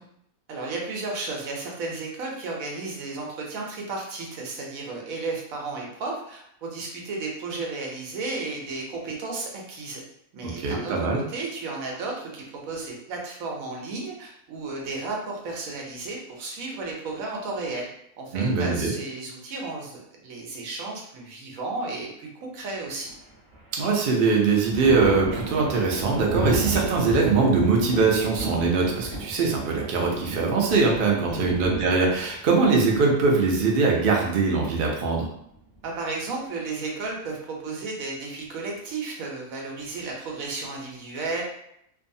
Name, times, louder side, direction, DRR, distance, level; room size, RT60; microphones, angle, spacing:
voice 1, 0.5-10.0 10.3-17.9 18.2-23.1 31.3-31.4 35.8-41.4, right 3 dB, 75° right, -1 dB, 1.0 m, -33 dB
voice 2, 10.4-11.2 18.3-18.9 23.7-35.3, right 4 dB, 60° right, -1 dB, 0.6 m, -22 dB
Thunder, 23.0-23.8 24.2-33.8 35.3-36.1, right 2 dB, 30° right, 0.9 m, -33 dB
2.6 x 2.3 x 2.6 m, 0.74 s
omnidirectional pair, 1.5 m